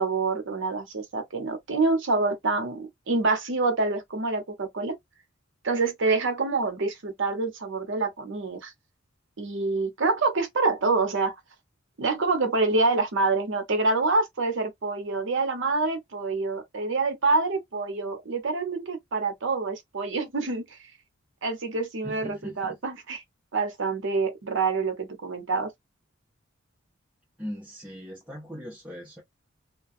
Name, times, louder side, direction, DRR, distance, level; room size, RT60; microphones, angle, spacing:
voice 1, 0.0-4.9 5.6-8.7 9.4-11.4 12.0-20.6 21.4-23.2 23.5-25.7, right 3 dB, 60° right, 0.8 m, -26 dB
voice 2, 22.0-22.8 27.4-29.2, equal, 5° right, 0.7 m, -39 dB
2.4 x 2.2 x 2.5 m
head